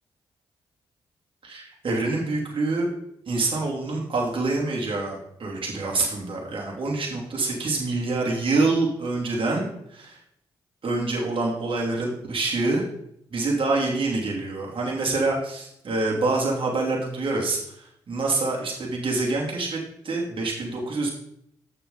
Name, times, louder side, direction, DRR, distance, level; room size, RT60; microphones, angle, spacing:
voice 1, 1.4-2.9 3.3-10.2 10.8-12.8 13.3-21.1, right 3 dB, 55° right, -2 dB, 2.9 m, -26 dB
7.9 x 6.9 x 3.9 m, 0.74 s
supercardioid pair, 45°, 11 cm